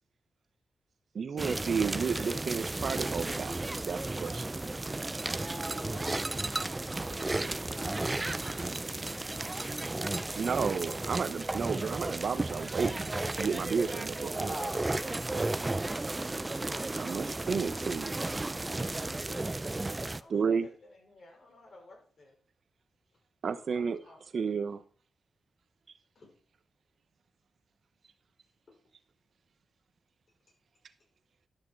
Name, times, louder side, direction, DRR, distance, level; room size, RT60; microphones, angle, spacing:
voice 1, 1.1-4.5 10.4-14.5 15.3-15.5 16.9-18.2 20.3-20.7 23.4-24.0 24.3-24.8, right 5 dB, 70° right, 10 dB, 0.9 m, -32 dB
sound 1, 1.4-20.2, right 2 dB, 25° right, 0.5 m, -34 dB
voice 2, 5.2-6.7 14.4-15.0, equal, ahead, 2 dB, 2.7 m, -42 dB
voice 3, 6.9-10.0 13.9-14.2 19.1-19.6 20.0-22.4 23.1-23.2 23.7-24.5 26.1-26.3 28.7-28.8 30.5-30.6, left 2 dB, 65° left, 0 dB, 5.6 m, -55 dB
12.0 x 6.5 x 4.7 m, 0.42 s
cardioid pair, 60°, 0 cm